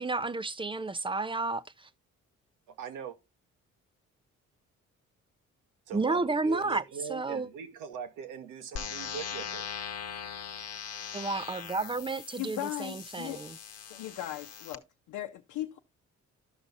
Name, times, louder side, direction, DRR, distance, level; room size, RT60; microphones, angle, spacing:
voice 1, 0.0-1.9 5.9-6.8 7.1-7.5 11.1-13.6, right 3 dB, 15° right, 0.4 m, -31 dB
voice 2, 2.8-3.2 5.9-9.7, right 7 dB, 90° right, 1.2 m, -41 dB
sound 1, 8.8-14.8, left 7 dB, 55° left, 1.0 m, -41 dB
voice 3, 12.4-13.4 13.9-15.8, left 13 dB, 90° left, 0.7 m, -38 dB
12.5 x 5.8 x 2.6 m
cardioid pair, 90°, 30 cm